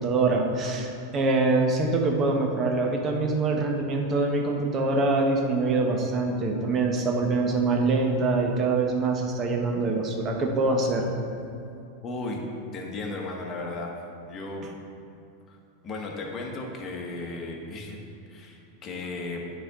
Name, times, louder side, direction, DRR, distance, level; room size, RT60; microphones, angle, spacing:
voice 1, 0.0-11.1, right 3 dB, 35° right, 2 dB, 1.0 m, -24 dB
voice 2, 12.0-12.4 12.7-13.9 14.3-14.7 15.5-15.6 15.8-18.0 18.3-19.4, left 2 dB, 30° left, 0 dB, 1.3 m, -35 dB
10.0 x 4.2 x 3.7 m, 2.6 s
hypercardioid pair, 115°, 0 cm